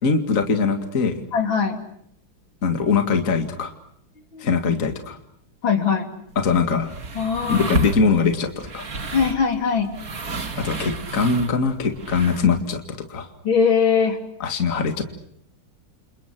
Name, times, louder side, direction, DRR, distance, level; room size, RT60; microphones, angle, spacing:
voice 1, 0.0-1.2 2.6-3.7 4.4-5.2 6.4-6.9 7.5-8.9 10.6-13.3 14.4-15.0, left 5 dB, 40° left, 6 dB, 2.5 m, -22 dB
voice 2, 1.3-1.8 4.3-4.5 5.6-6.1 7.2-7.7 9.1-9.9 13.4-14.2, left 6 dB, 70° left, 6 dB, 3.8 m, -20 dB
sound 1, 6.3-12.6, right 2 dB, 45° right, 2.5 m, -32 dB
29.0 x 28.5 x 6.1 m, 0.71 s
omnidirectional pair, 2.3 m